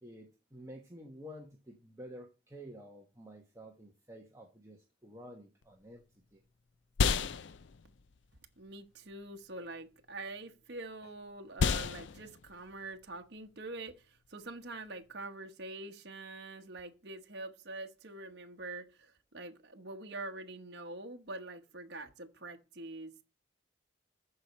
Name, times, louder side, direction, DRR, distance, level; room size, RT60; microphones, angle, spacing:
voice 1, 0.0-6.0 6.3-6.4, equal, 15° right, 1.2 m, -50 dB
sound 1, 5.6-15.2, left 5 dB, 70° left, 0.5 m, -36 dB
voice 2, 8.6-23.2, right 2 dB, 55° right, 1.1 m, -45 dB
14.0 x 4.8 x 4.2 m
head